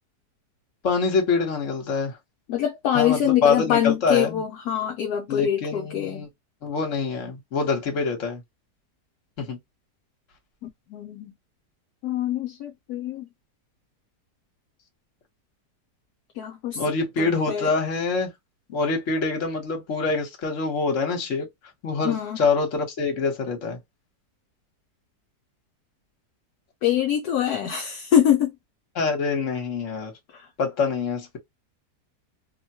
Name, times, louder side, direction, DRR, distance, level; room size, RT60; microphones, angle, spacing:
voice 1, 0.8-2.2 2.9-4.4 5.3-6.3 6.6-8.4 9.4-9.6 16.7-18.3 18.7-21.5 21.8-23.8 28.9-30.1 30.6-31.4, left 4 dB, 50° left, 1.3 m, -25 dB
voice 2, 2.5-6.3 10.6-11.3 12.0-13.3 16.3-16.8 17.2-17.7 22.0-22.4 26.8-28.5 30.3-30.5, left 10 dB, 70° left, 1.1 m, -24 dB
2.9 x 2.2 x 2.7 m
omnidirectional pair, 1.8 m